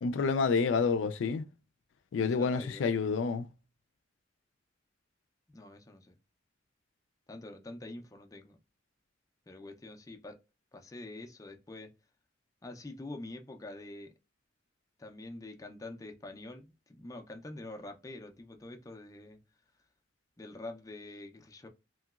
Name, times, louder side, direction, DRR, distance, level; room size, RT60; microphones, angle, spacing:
voice 1, 0.0-1.5 2.1-3.5, left 5 dB, 85° left, 0.4 m, -28 dB
voice 2, 2.4-2.9 5.5-6.2 7.3-8.6 9.5-10.4 10.7-11.9 12.6-14.1 15.0-19.4 20.4-21.7, left 2 dB, 20° left, 0.4 m, -46 dB
3.0 x 2.8 x 2.3 m
head